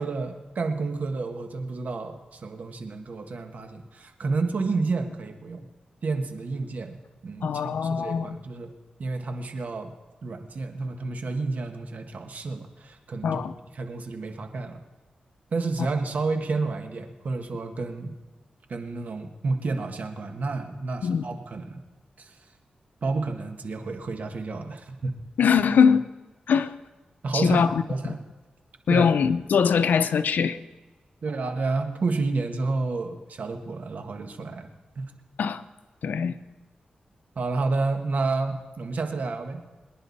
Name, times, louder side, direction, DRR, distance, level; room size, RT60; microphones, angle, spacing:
voice 1, 0.0-5.7 6.0-7.0 7.2-7.5 7.8-8.7 9.0-9.9 10.2-13.4 13.8-14.8 15.5-18.1 18.7-21.8 22.2-22.3 23.0-25.2 27.2-28.2 28.9-29.1 31.2-34.7 34.9-35.1 37.3-39.6, right 3 dB, 65° right, 5 dB, 1.6 m, -30 dB
voice 2, 7.4-8.4 13.2-13.5 21.0-21.2 25.4-26.1 26.5-26.7 27.3-28.2 28.9-30.6 35.4-35.6 36.0-36.4, left 6 dB, 85° left, 12 dB, 0.7 m, -22 dB
24.0 x 10.5 x 4.2 m, 1.2 s
cardioid pair, 70°, 3 cm